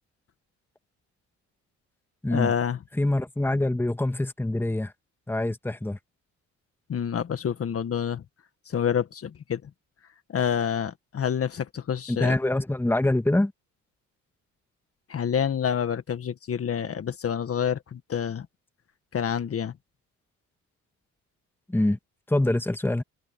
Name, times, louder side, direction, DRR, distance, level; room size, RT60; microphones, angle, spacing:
voice 1, 2.3-2.8 6.9-8.2 8.7-9.7 10.3-12.4 15.1-18.5 19.1-19.8, left 8 dB, 50° left, 1.7 m, -28 dB
voice 2, 3.0-4.9 5.3-6.0 12.1-13.5 21.7-22.0 22.3-23.0, left 1 dB, 5° left, 1.9 m, -25 dB
cardioid pair, 90°, 30 cm